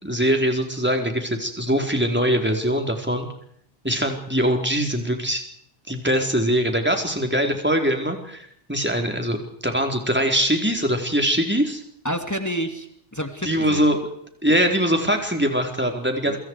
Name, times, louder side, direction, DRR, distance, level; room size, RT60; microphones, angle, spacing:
voice 1, 0.0-3.3 3.8-5.4 5.9-11.8 13.4-14.0 14.4-16.4, equal, 10° right, 4 dB, 4.2 m, -22 dB
voice 2, 12.0-13.9 16.2-16.4, equal, 15° left, 6 dB, 2.6 m, -29 dB
27.5 x 26.0 x 4.8 m, 0.68 s
omnidirectional pair, 1.2 m